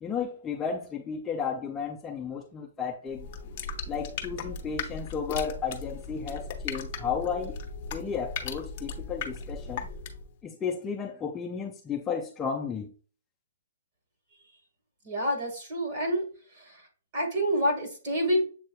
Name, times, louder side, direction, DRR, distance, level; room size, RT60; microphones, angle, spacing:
voice 1, 0.0-3.3 3.9-7.6 7.9-9.9 10.4-12.9, left 6 dB, 10° left, 0.4 m, -33 dB
sound 1, 3.1-10.3, left 4 dB, 35° left, 0.7 m, -37 dB
voice 2, 15.1-16.2 17.1-18.4, equal, 35° right, 1.8 m, -27 dB
7.4 x 3.0 x 2.3 m
hypercardioid pair, 160°, 0 cm